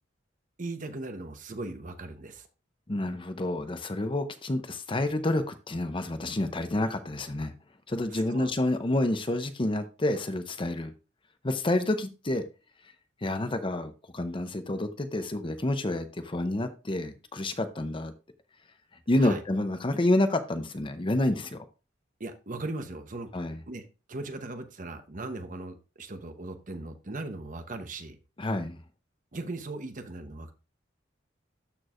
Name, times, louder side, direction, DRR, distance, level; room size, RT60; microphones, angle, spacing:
voice 1, 0.6-2.5 8.1-8.5 19.2-19.4 22.2-23.3 23.7-28.2 29.3-30.5, right 2 dB, 45° right, 0.9 m, -38 dB
voice 2, 2.9-7.5 7.9-10.9 11.4-12.4 13.2-18.1 19.1-21.6 23.3-23.6 28.4-28.8, left 1 dB, 25° left, 0.7 m, -29 dB
13.0 x 4.6 x 2.5 m
head